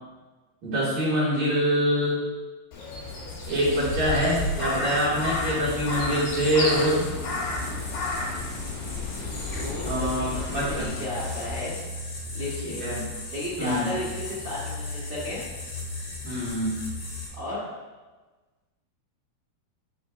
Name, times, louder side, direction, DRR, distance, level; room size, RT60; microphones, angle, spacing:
voice 1, 0.6-2.2 3.5-7.1 9.8-10.9 12.8-13.1 13.6-13.9 16.2-16.7, equal, 50° right, -8 dB, 2.6 m, -25 dB
Crow, 2.7-11.6, left 2 dB, 65° left, 2.1 m, -33 dB
sound 1, 2.9-17.3, left 2 dB, 80° left, 0.9 m, -37 dB
sound 2, 4.7-10.9, left 3 dB, 45° left, 0.9 m, -36 dB
voice 2, 9.2-11.8 12.3-12.8 13.3-15.4 17.3-17.6, left 1 dB, 75° right, -10 dB, 0.6 m, -34 dB
7.6 x 6.2 x 2.6 m, 1.3 s
omnidirectional pair, 4.9 m